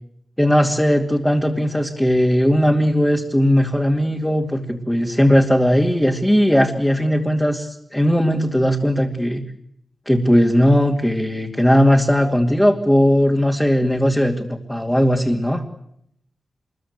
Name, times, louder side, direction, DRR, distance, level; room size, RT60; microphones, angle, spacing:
voice 1, 0.4-9.4 10.1-15.6, equal, 5° left, 0 dB, 2.6 m, -18 dB
27.0 x 22.0 x 8.2 m, 0.73 s
wide cardioid pair, 100°, 0 cm